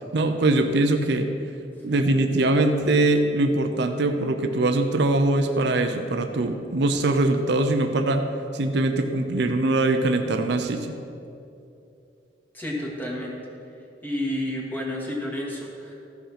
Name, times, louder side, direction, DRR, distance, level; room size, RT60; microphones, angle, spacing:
voice 1, 0.1-1.3 1.8-8.3 8.5-10.9, right 2 dB, 70° right, 6 dB, 0.7 m, -22 dB
voice 2, 12.5-13.4 14.0-15.9, left 1 dB, 10° left, -3 dB, 1.8 m, -30 dB
14.0 x 5.6 x 5.8 m, 2.6 s
head